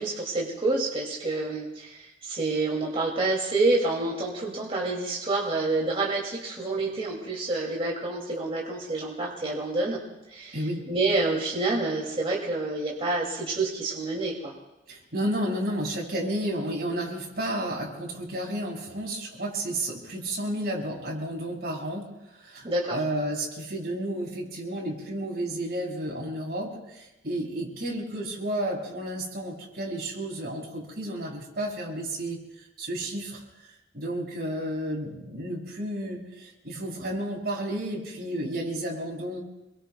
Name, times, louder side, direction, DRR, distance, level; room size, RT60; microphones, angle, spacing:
voice 1, 0.0-10.0 10.3-10.6 10.9-14.5 22.6-23.0, right 2 dB, 30° right, -3 dB, 2.5 m, -28 dB
voice 2, 10.5-10.9 14.9-39.4, right 1 dB, 60° right, -2 dB, 5.6 m, -32 dB
28.0 x 22.5 x 2.3 m, 0.95 s
head